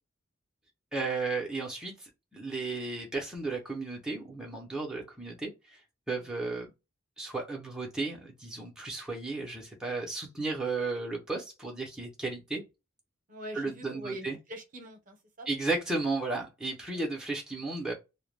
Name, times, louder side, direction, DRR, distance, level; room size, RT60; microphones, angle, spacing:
voice 1, 0.9-5.8 6.1-6.7 7.2-12.6 13.5-14.4 15.5-17.9, right 3 dB, 5° right, 0.5 m, -34 dB
voice 2, 13.3-15.5 16.9-17.0, right 1 dB, 40° right, 0.7 m, -44 dB
2.1 x 2.0 x 3.1 m
head